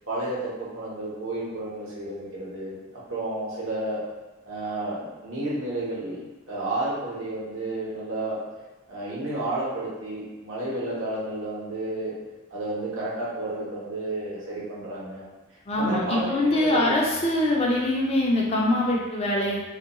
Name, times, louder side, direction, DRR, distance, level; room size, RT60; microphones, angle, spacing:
voice 1, 0.1-2.8 3.1-4.0 4.4-6.2 6.5-8.4 8.9-12.1 12.5-15.2 15.7-17.0, right 2 dB, 65° right, -7 dB, 0.8 m, -31 dB
voice 2, 15.7-19.6, left 1 dB, 30° left, -2 dB, 0.3 m, -23 dB
2.2 x 2.2 x 2.9 m, 1.2 s
head